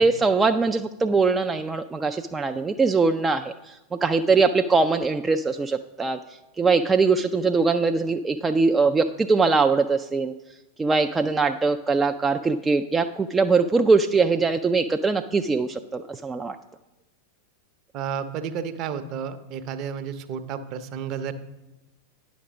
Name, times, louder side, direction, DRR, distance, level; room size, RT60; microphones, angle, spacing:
voice 1, 0.0-6.2 6.6-10.3 10.8-16.6, right 4 dB, 15° right, 6 dB, 0.3 m, -22 dB
voice 2, 17.9-21.4, right 7 dB, 40° right, 10 dB, 0.7 m, -32 dB
9.8 x 6.1 x 5.1 m, 0.99 s
figure-of-eight pair, 90°, 0 cm